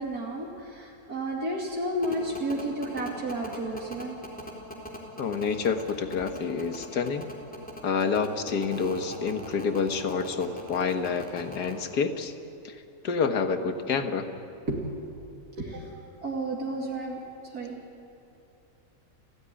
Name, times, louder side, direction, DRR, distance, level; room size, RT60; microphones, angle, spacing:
voice 1, 0.0-4.2 14.7-14.8 15.6-15.9 16.2-17.2 17.5-17.8, right 1 dB, 65° right, -2 dB, 3.0 m, -32 dB
sound 1, 2.0-11.7, equal, 5° left, 3.8 m, -40 dB
voice 2, 5.2-7.3 7.8-12.3 12.6-12.8 13.0-14.3, left 5 dB, 80° left, 8 dB, 1.9 m, -28 dB
29.0 x 16.0 x 10.0 m, 2.7 s
omnidirectional pair, 1.7 m